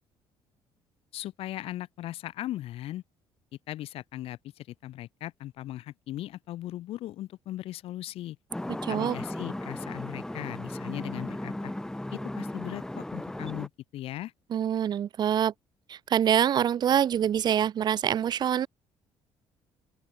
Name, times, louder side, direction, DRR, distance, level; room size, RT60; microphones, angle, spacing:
voice 1, 1.1-3.0 3.7-8.4 8.9-11.7 12.1-14.3, left 14 dB, 70° left, 7.3 m, -38 dB
sound 1, 8.5-13.7, left 1 dB, 5° left, 2.4 m, -36 dB
voice 2, 8.8-9.2 14.5-15.5 15.9-18.7, right 9 dB, 45° right, 1.1 m, -25 dB
open air
cardioid pair, 135°, 10 cm